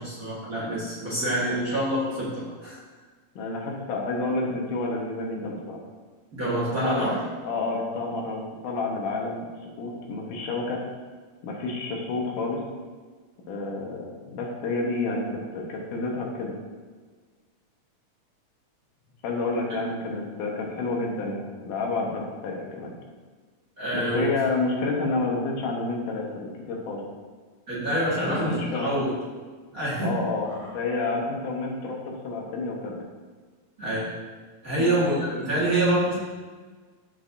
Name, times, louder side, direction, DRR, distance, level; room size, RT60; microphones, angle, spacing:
voice 1, 0.0-2.8 6.3-7.2 23.8-24.3 27.7-29.1 29.7-30.1 30.5-30.7 33.8-34.1 34.6-36.1, right 1 dB, 35° right, -8 dB, 1.6 m, -26 dB
voice 2, 3.4-5.8 6.7-7.0 7.4-9.5 9.8-10.8 11.4-12.6 13.5-15.3 15.5-16.5 19.2-22.9 23.9-26.3 26.7-27.0 28.2-29.0 30.0-30.5 30.7-33.0 34.8-34.9, left 3 dB, 85° left, -1 dB, 2.8 m, -29 dB
13.5 x 4.7 x 2.6 m, 1.5 s
omnidirectional pair, 3.6 m